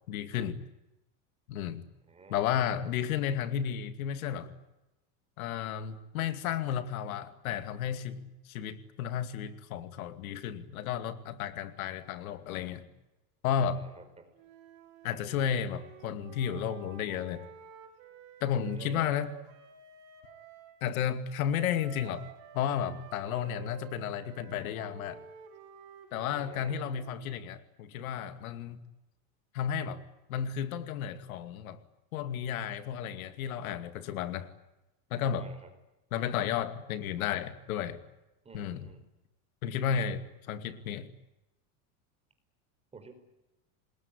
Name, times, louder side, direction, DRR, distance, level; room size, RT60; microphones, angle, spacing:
voice 1, 0.1-0.6 1.5-1.8 2.3-4.5 5.4-12.9 13.4-13.9 15.0-17.4 18.4-19.3 20.8-22.3 22.5-25.2 26.1-28.8 29.5-30.0 30.3-31.8 32.1-34.5 35.1-35.5 36.1-38.0 38.5-38.9 39.6-41.1, left 8 dB, 90° left, 11 dB, 2.5 m, -33 dB
voice 2, 2.1-2.4 2.8-2.9 13.7-14.3 18.6-19.1 23.3-23.7 26.3-26.8 35.4-35.7 38.4-39.0 42.9-43.1, right 4 dB, 15° right, 6 dB, 4.8 m, -51 dB
Wind instrument woodwind instrument, 14.4-20.8 21.5-27.5, right 9 dB, 60° right, 6.2 m, -51 dB
28.0 x 20.5 x 9.9 m, 0.98 s
supercardioid pair, 150°, 41 cm